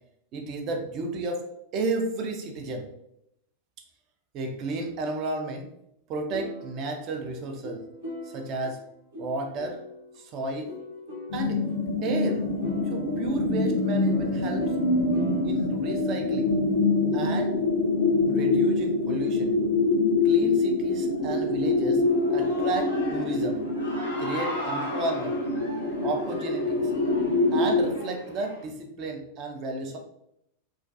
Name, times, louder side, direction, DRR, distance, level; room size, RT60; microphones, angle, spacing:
voice 1, 0.3-1.4 1.7-2.9 4.3-5.7 6.1-7.8 8.2-8.8 9.2-9.8 10.2-10.7 11.3-11.6 12.0-12.4 12.8-14.7 15.4-16.5 17.1-17.5 18.3-19.6 20.2-23.6 24.2-25.4 26.0-26.9 27.5-30.0, right 2 dB, 35° right, 2 dB, 0.4 m, -32 dB
sound 1, 6.3-10.2 10.6-15.5, left 1 dB, 70° right, 0.9 m, -40 dB
sound 2, 11.3-28.0, left 3 dB, 55° left, 0.4 m, -25 dB
Human voice / Cheering, 22.0-28.6, left 1 dB, 80° left, 0.8 m, -38 dB
2.3 x 2.2 x 2.4 m, 0.78 s
figure-of-eight pair, 90°, 0 cm